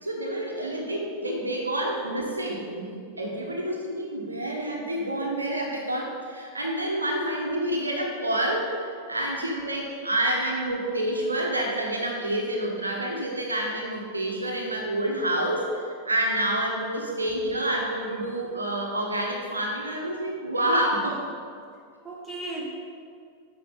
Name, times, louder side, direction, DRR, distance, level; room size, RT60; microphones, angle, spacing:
voice 1, 0.0-21.2, right 1 dB, 80° right, 0 dB, 1.0 m, -28 dB
voice 2, 22.0-22.6, right 2 dB, ahead, -5 dB, 1.6 m, -37 dB
8.4 x 5.3 x 3.7 m, 2.2 s
figure-of-eight pair, 90°, 0 cm